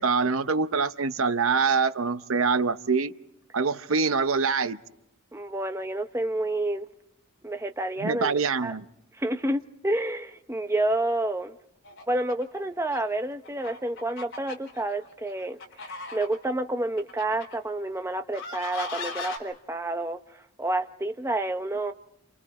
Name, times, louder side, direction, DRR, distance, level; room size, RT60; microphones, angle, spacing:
voice 1, 0.0-3.1 3.5-4.8 8.0-8.8, right 4 dB, 65° right, 0.8 m, -24 dB
voice 2, 5.3-6.9 7.4-8.8 9.2-11.5 12.1-20.2 20.6-21.9, right 1 dB, 10° right, 0.8 m, -29 dB
sound 1, 11.8-12.6 12.9-13.0 13.4-16.5 17.0-17.6 18.3-19.4, left 3 dB, 55° left, 4.4 m, -38 dB
29.5 x 28.0 x 4.2 m
head